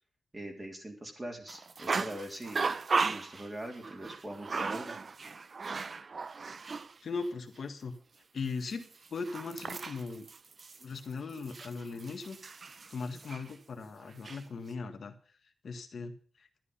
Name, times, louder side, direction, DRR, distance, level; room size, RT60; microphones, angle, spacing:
voice 1, 0.3-2.7 3.0-5.0, right 1 dB, 20° right, 2 dB, 3.2 m, -42 dB
sound 1, 1.5-6.9 7.2-7.3 8.8-13.5 14.0-14.4, right 4 dB, 45° right, 0.5 m, -36 dB
voice 2, 7.0-7.9 8.3-8.8 9.1-10.3 10.8-12.4 12.9-15.1 15.6-16.1 16.4-16.5, left 4 dB, 60° left, 5 dB, 1.5 m, -38 dB
12.0 x 11.0 x 5.5 m, 0.42 s
wide cardioid pair, 115°, 0 cm